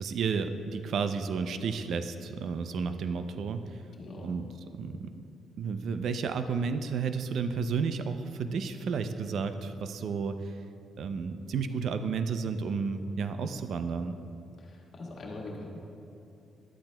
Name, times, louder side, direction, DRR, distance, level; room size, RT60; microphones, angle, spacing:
voice 1, 0.0-3.7 4.2-4.5 4.7-5.2 5.6-10.5 11.0-14.2, right 5 dB, 65° right, 9 dB, 0.4 m, -32 dB
voice 2, 4.0-4.3 14.6-15.8, left 2 dB, 55° left, -2 dB, 1.7 m, -42 dB
12.0 x 8.7 x 2.2 m, 2.7 s
cardioid pair, 90°, 0 cm